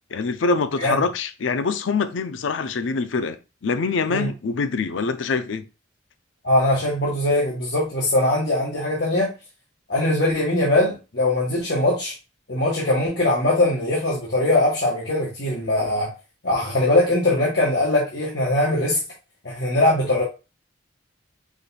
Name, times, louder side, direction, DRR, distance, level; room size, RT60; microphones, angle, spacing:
voice 1, 0.1-5.7, left 4 dB, 85° left, 0.5 m, -24 dB
voice 2, 6.4-9.3 9.9-12.1 12.5-16.1 16.4-19.0 19.4-20.2, left 1 dB, 60° left, 1.2 m, -21 dB
5.0 x 2.2 x 4.0 m
head